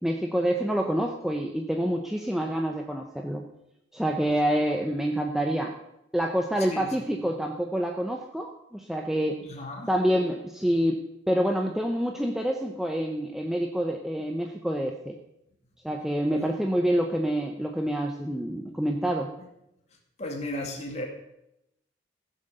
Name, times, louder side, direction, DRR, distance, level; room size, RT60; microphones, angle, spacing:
voice 1, 0.0-3.4 3.9-5.7 6.1-9.4 9.9-11.0 11.3-15.2 15.8-19.3, equal, ahead, 2 dB, 0.7 m, -27 dB
voice 2, 9.4-9.9 16.3-16.5 19.4-19.5 20.2-21.0, left 1 dB, 35° left, 0 dB, 2.2 m, -35 dB
15.5 x 7.4 x 6.7 m, 0.86 s
head